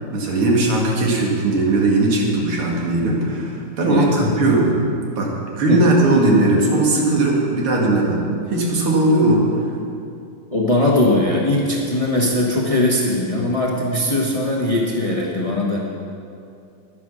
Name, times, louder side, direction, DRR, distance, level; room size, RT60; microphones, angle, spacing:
voice 1, 0.1-4.7 5.2-9.5, right 2 dB, 90° right, -2 dB, 2.8 m, -18 dB
voice 2, 10.5-15.8, left 1 dB, 20° left, -2 dB, 1.0 m, -20 dB
11.0 x 10.0 x 6.3 m, 2.5 s
omnidirectional pair, 2.3 m